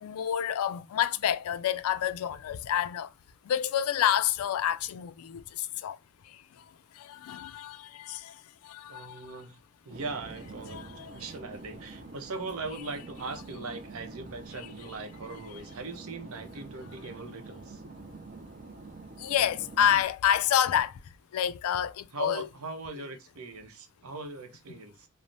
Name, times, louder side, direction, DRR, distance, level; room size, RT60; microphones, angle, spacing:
voice 1, 0.0-3.1 3.5-6.0 7.0-8.3 8.6-9.2 10.7-11.1 19.2-20.9 21.3-22.5, left 10 dB, 80° left, 0.3 m, -28 dB
voice 2, 8.9-17.8 22.1-25.1, right 3 dB, 80° right, 0.7 m, -40 dB
sound 1, 9.9-20.0, right 3 dB, 35° right, 0.4 m, -46 dB
3.2 x 2.0 x 2.5 m
head